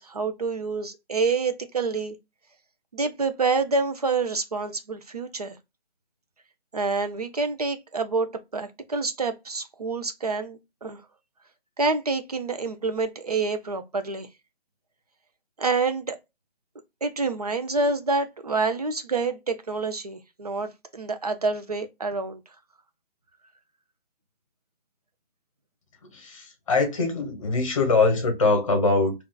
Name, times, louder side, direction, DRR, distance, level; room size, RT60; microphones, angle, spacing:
voice 1, 0.0-2.2 2.9-5.5 6.7-8.3 8.5-11.0 11.8-14.3 15.6-16.2 17.0-22.4, right 4 dB, 40° right, 0.4 m, -27 dB
voice 2, 26.0-29.1, left 3 dB, 35° left, 0.9 m, -23 dB
3.5 x 2.3 x 2.3 m
figure-of-eight pair, 165°, 31 cm